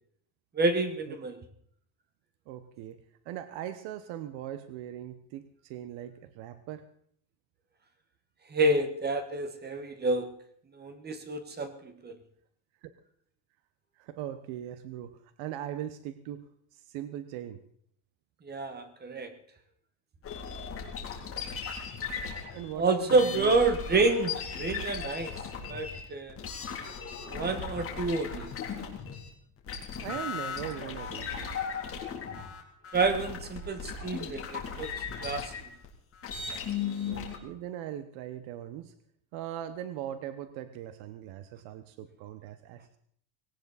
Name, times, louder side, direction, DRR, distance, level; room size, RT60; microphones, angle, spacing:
voice 1, 0.5-1.4 8.5-10.3 10.7-12.2 18.4-19.3 22.8-25.3 25.7-26.4 27.2-28.5 32.9-34.9 35.2-35.5, right 3 dB, 20° right, 10 dB, 1.4 m, -28 dB
voice 2, 2.5-3.0 3.2-6.9 12.8-12.9 14.0-16.4 16.7-17.6 22.5-23.5 30.0-31.6 37.1-38.9 39.3-43.0, right 11 dB, 80° right, 11 dB, 1.2 m, -40 dB
sound 1, 20.2-29.3 29.6-37.4, left 6 dB, 30° left, 2.7 m, -37 dB
19.0 x 17.5 x 4.2 m, 0.64 s
cardioid pair, 170°, 45 cm